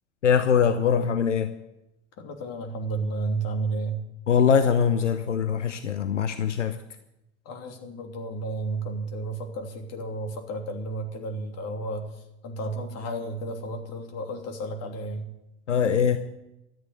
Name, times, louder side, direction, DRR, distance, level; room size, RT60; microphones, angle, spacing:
voice 1, 0.2-1.5 4.3-6.8 15.7-16.2, left 7 dB, 85° left, 10 dB, 0.8 m, -22 dB
voice 2, 2.2-4.0 7.4-12.1 12.4-15.2, right 2 dB, 45° left, 4 dB, 3.1 m, -32 dB
13.0 x 9.2 x 8.3 m, 0.89 s
figure-of-eight pair, 80°, 35 cm